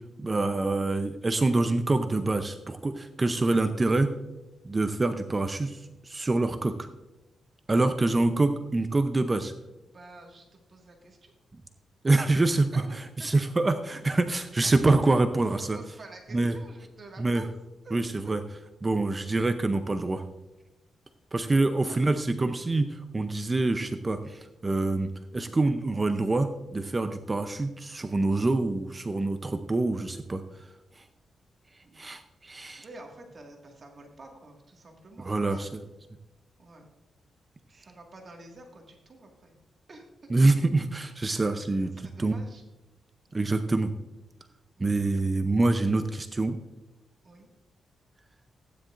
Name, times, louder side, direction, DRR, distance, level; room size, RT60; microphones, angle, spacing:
voice 1, 0.2-4.1 4.6-6.9 7.7-9.5 12.0-12.7 13.2-15.8 16.3-16.5 17.2-17.4 17.9-18.4 18.8-20.2 21.3-30.4 31.0-31.1 32.0-32.8 35.2-35.8 40.3-42.3 43.3-43.9 44.8-46.6, right 2 dB, 25° right, 8 dB, 0.6 m, -26 dB
voice 2, 9.9-11.3 12.0-12.2 12.7-13.3 15.5-17.6 17.8-18.3 21.9-22.0 31.8-32.0 32.8-35.6 36.6-36.8 37.7-39.5 39.9-40.3 41.3-41.4 41.8-42.7 44.8-45.0 47.2-47.5, right 2 dB, 45° right, 1 dB, 1.9 m, -49 dB
15.5 x 9.9 x 2.6 m, 1.0 s
cardioid pair, 100°, 0 cm